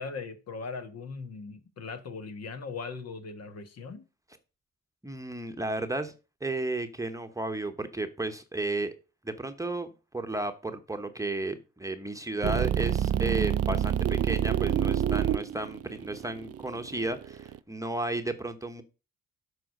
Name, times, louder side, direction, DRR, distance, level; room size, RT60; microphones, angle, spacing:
voice 1, 0.0-4.0, left 4 dB, 55° left, 9 dB, 1.5 m, -39 dB
voice 2, 5.0-6.1 6.4-8.9 9.2-9.9 10.1-18.8, right 2 dB, 10° right, 7 dB, 1.0 m, -33 dB
sound 1, 12.4-17.6, right 9 dB, 55° right, 0.5 m, -27 dB
7.7 x 5.1 x 6.5 m, 0.31 s
cardioid pair, 90°, 30 cm